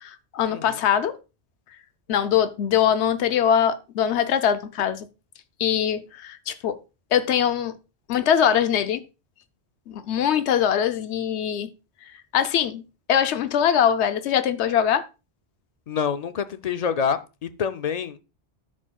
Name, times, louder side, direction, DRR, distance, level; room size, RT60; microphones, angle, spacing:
voice 1, 0.0-1.2 2.1-5.1 5.6-6.8 7.1-7.7 8.1-9.0 9.9-11.7 12.3-12.8 13.1-15.0, left 9 dB, 90° left, 0.9 m, -22 dB
voice 2, 15.9-18.2, left 7 dB, 55° left, 0.4 m, -27 dB
13.5 x 5.0 x 2.3 m
omnidirectional pair, 1.1 m